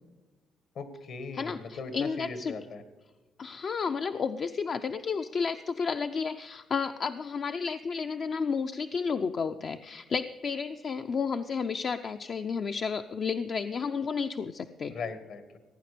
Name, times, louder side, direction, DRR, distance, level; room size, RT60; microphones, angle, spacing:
voice 1, 0.8-2.8 14.9-15.6, left 4 dB, 70° left, 11 dB, 1.7 m, -39 dB
voice 2, 1.3-2.5 3.4-14.9, left 5 dB, 50° left, 8 dB, 0.5 m, -32 dB
16.0 x 9.2 x 6.7 m, 1.2 s
cardioid pair, 90°, 0 cm